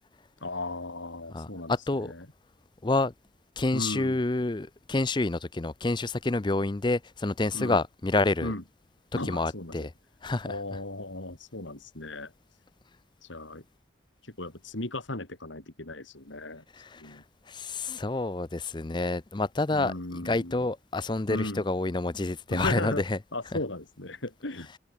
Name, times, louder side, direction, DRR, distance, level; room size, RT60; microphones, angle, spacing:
voice 1, 0.4-2.3 3.7-4.2 7.5-7.8 8.4-8.6 9.1-9.9 10.5-12.3 13.3-13.6 14.4-16.6 17.0-17.2 19.7-20.7 21.3-21.7 22.5-23.0 23.3-24.7, left 2 dB, 80° left, 3.4 m, -36 dB
voice 2, 1.3-2.1 2.8-3.1 3.6-8.5 9.3-9.9 10.2-10.5 16.8-17.2 17.5-23.2, left 2 dB, 25° left, 0.5 m, -28 dB
head